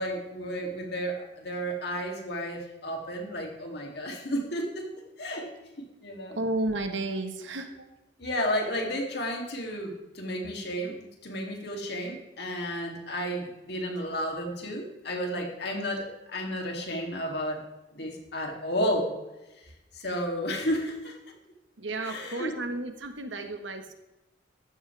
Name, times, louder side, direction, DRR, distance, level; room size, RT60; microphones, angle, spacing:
voice 1, 0.0-4.9 5.2-5.5 6.0-6.4 8.2-11.0 11.2-17.6 17.9-19.1 19.9-21.1 22.0-22.6, equal, 60° left, 1 dB, 3.1 m, -32 dB
voice 2, 6.3-7.8 21.8-23.9, right 2 dB, 80° right, 6 dB, 1.6 m, -32 dB
14.5 x 12.5 x 3.6 m, 1.0 s
head